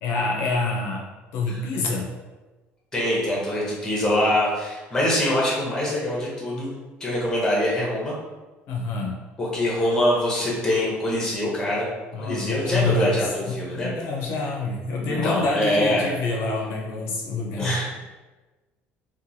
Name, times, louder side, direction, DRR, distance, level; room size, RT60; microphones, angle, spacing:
voice 1, 0.0-1.1 1.3-2.1 8.7-9.2 12.1-17.7, left 3 dB, 70° left, -1 dB, 0.5 m, -27 dB
voice 2, 2.9-6.7 7.0-8.1 9.4-11.9 12.2-13.9 15.1-16.1 17.6-17.9, left 1 dB, 15° left, -5 dB, 0.7 m, -24 dB
2.9 x 2.2 x 2.6 m, 1.2 s
cardioid pair, 160°, 4 cm